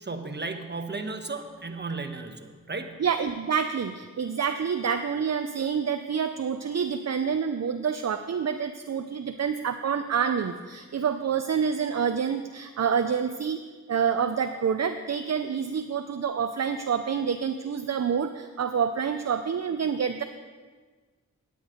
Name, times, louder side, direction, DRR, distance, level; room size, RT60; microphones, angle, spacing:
voice 1, 0.0-3.0, right 3 dB, 30° right, 6 dB, 1.1 m, -34 dB
voice 2, 3.0-13.6 13.9-20.2, right 7 dB, 50° right, 8 dB, 0.5 m, -27 dB
9.4 x 9.0 x 5.0 m, 1.4 s
cardioid pair, 40°, 33 cm